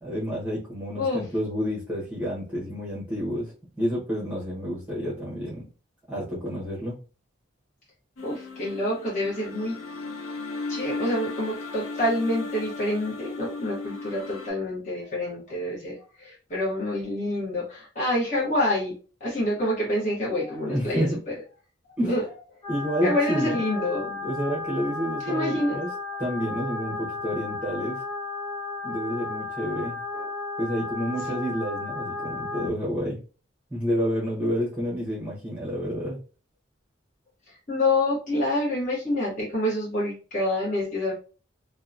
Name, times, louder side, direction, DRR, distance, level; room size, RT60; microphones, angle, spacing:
voice 1, 0.0-5.7 6.1-7.0 20.7-21.2 22.0-22.1 22.7-23.6 24.2-25.9 26.2-28.0 28.8-30.0 30.6-33.2 33.7-36.2, equal, 10° right, -7 dB, 0.8 m, -29 dB
sound 1, 8.2-14.5, left 3 dB, 90° left, 0.6 m, -36 dB
voice 2, 8.2-9.8 10.7-18.9 19.2-21.3 22.0-22.2 23.0-24.3 25.2-25.8 30.1-30.2 31.3-31.4 37.5-41.1, left 1 dB, 40° left, -6 dB, 1.0 m, -27 dB
sound 2, 22.6-32.7, left 3 dB, 20° left, 0.5 m, -34 dB
2.7 x 2.1 x 2.4 m, 0.36 s
head